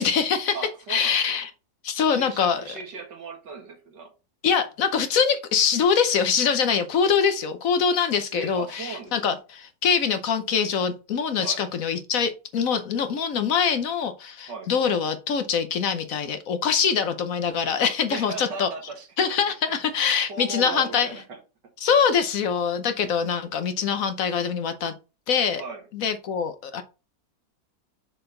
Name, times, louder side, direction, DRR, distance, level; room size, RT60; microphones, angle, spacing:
voice 1, 0.0-0.6 0.9-1.5 1.8-2.6 4.4-18.7 19.2-21.2 21.8-24.9 25.3-25.6 25.9-26.8, left 6 dB, 60° left, 1.1 m, -24 dB
voice 2, 0.5-1.4 2.0-4.1 8.3-9.4 11.4-11.6 14.5-14.7 18.1-19.1 20.3-21.4 25.6-25.8, right 4 dB, 90° right, 2.3 m, -37 dB
6.7 x 4.3 x 3.8 m
omnidirectional pair, 1.8 m